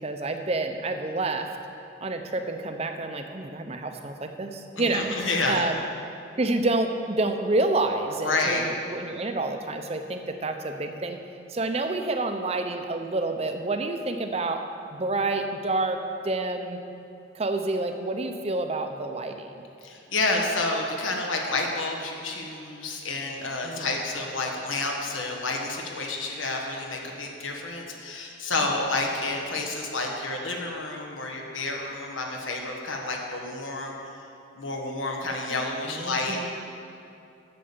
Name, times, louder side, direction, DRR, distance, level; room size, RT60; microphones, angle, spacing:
voice 1, 0.0-1.5 2.0-5.1 5.5-5.8 6.4-11.2 11.5-14.6 14.9-16.8 17.3-19.6 23.6-24.0 35.8-36.5, right 2 dB, 30° right, 6 dB, 0.6 m, -28 dB
voice 2, 4.8-5.6 8.2-8.6 19.8-34.0 34.6-36.5, left 2 dB, 85° left, 1 dB, 1.4 m, -29 dB
8.5 x 6.9 x 7.2 m, 2.6 s
head